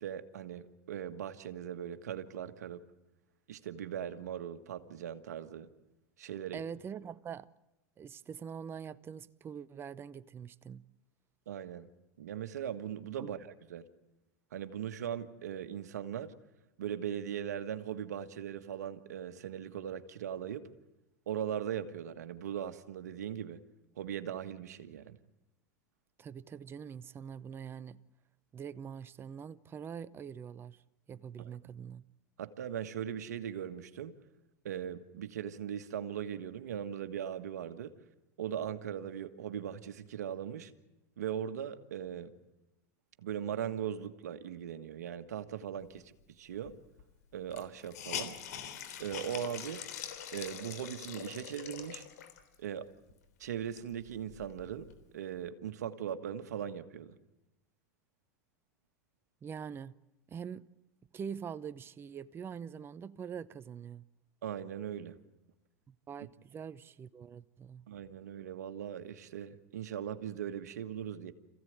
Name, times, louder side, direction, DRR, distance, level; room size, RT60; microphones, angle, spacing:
voice 1, 0.0-2.8 3.5-5.7 6.2-6.6 11.5-11.9 12.2-13.9 14.5-16.3 16.8-20.7 21.3-23.6 24.0-25.2 31.4-31.6 32.4-34.1 34.6-37.9 38.4-40.7 41.2-42.3 43.2-46.7 47.3-48.3 49.0-49.9 50.3-52.0 52.6-52.9 53.4-54.9 55.1-57.1 64.4-65.2 67.9-71.3, right 9 dB, 90° right, 1.6 m, -39 dB
voice 2, 6.5-7.5 8.0-10.8 13.2-13.3 26.2-28.0 28.5-30.8 31.1-32.0 59.4-59.9 60.3-60.7 61.1-64.1 65.9-67.9, right 7 dB, 25° right, 0.8 m, -44 dB
Hiss, 46.7-46.8 47.0-47.1 47.5-52.5 53.1-53.2 53.6-54.9, left 9 dB, 80° left, 3.5 m, -43 dB
27.0 x 16.0 x 9.5 m
hypercardioid pair, 110°, 9 cm